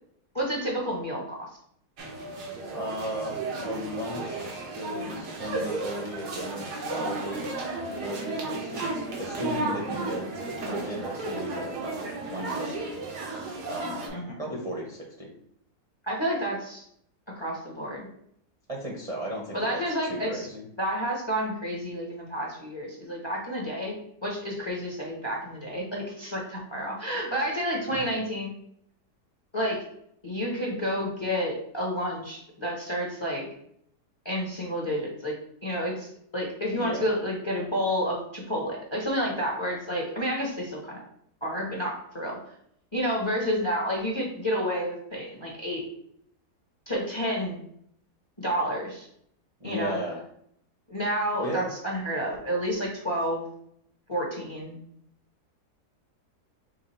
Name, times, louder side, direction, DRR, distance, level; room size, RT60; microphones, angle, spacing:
voice 1, 0.3-1.5 14.1-14.4 16.0-16.8 17.3-18.1 19.5-20.5 20.8-24.0 24.2-28.6 29.5-29.8 30.2-33.5 34.2-35.3 35.6-41.0 41.4-42.4 42.9-45.8 46.9-47.6 48.4-49.1 49.6-50.0 50.9-53.4 54.1-54.8, equal, 20° left, -2 dB, 0.8 m, -30 dB
sound 1, 2.0-14.1, right 2 dB, 90° right, 1.6 m, -34 dB
voice 2, 2.7-7.5 8.0-12.7 13.7-14.0 14.4-15.3 18.7-19.8 20.1-20.6 27.9-28.0 36.8-37.1 49.6-50.2 51.4-51.7, equal, 30° right, -3 dB, 0.7 m, -35 dB
5.2 x 2.4 x 4.2 m, 0.68 s
omnidirectional pair, 1.7 m